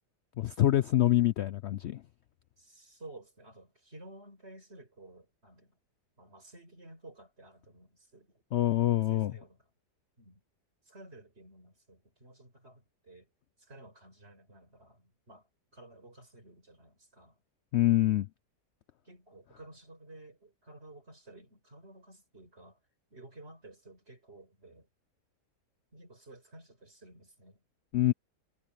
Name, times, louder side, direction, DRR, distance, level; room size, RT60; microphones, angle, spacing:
voice 1, 0.4-2.0 8.5-9.3 17.7-18.3 27.9-28.1, left 13 dB, 80° left, 0.6 m, -25 dB
voice 2, 2.6-5.8 6.2-8.4 9.1-9.7 10.2-10.4 10.8-13.3 13.6-17.4 19.0-22.8 23.1-24.9 25.9-27.6, right 2 dB, 40° right, 5.9 m, -53 dB
omnidirectional pair, 1.7 m